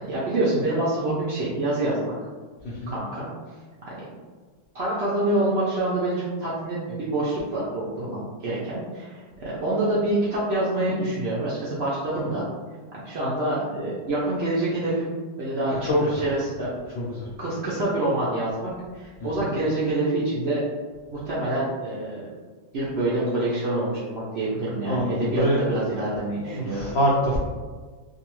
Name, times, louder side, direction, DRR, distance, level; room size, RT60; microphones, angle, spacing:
voice 1, 0.0-2.1 2.9-3.3 3.8-3.9 4.7-12.5 12.9-15.1 15.4-16.7 17.4-20.6 21.1-22.3 22.7-26.8, right 1 dB, 65° right, -7 dB, 0.6 m, -26 dB
voice 2, 17.0-17.3 19.2-19.5 24.9-25.6 26.3-27.4, equal, 80° left, -5 dB, 0.5 m, -25 dB
2.6 x 2.3 x 3.0 m, 1.4 s
omnidirectional pair, 1.7 m